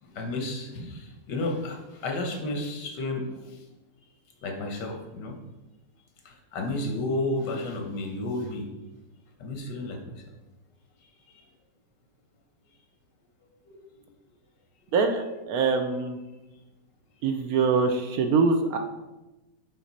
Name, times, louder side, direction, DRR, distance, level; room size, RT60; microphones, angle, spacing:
voice 1, 0.0-3.6 4.4-5.4 6.2-8.7 9.4-10.1 13.7-13.8 14.0-14.1 17.4-17.5, left 2 dB, 80° left, 3 dB, 1.7 m, -32 dB
voice 2, 14.9-16.2 17.2-18.8, right 4 dB, 70° right, 5 dB, 0.9 m, -24 dB
5.8 x 4.7 x 4.1 m, 1.1 s
omnidirectional pair, 1.9 m